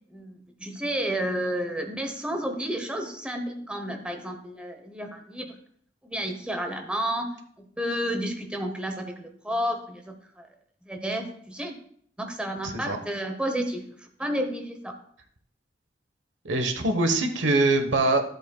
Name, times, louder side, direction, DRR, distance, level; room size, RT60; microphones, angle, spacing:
voice 1, 0.1-5.5 6.0-7.3 7.6-10.5 10.8-11.8 12.2-14.9, equal, 5° right, 4 dB, 0.9 m, -31 dB
voice 2, 12.6-13.0 16.4-18.2, right 2 dB, 90° right, 6 dB, 1.2 m, -23 dB
13.5 x 7.8 x 2.3 m, 0.63 s
head